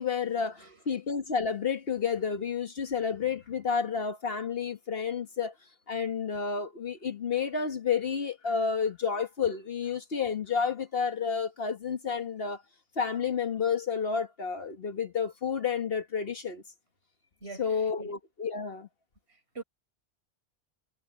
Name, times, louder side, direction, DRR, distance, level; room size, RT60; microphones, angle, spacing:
voice 1, 0.0-5.5 5.9-12.6 13.0-16.6 17.6-18.9, left 6 dB, 60° left, 1.6 m, -30 dB
voice 2, 17.4-18.1 19.5-19.6, right 4 dB, 75° right, 5.6 m, -43 dB
omnidirectional pair, 1.1 m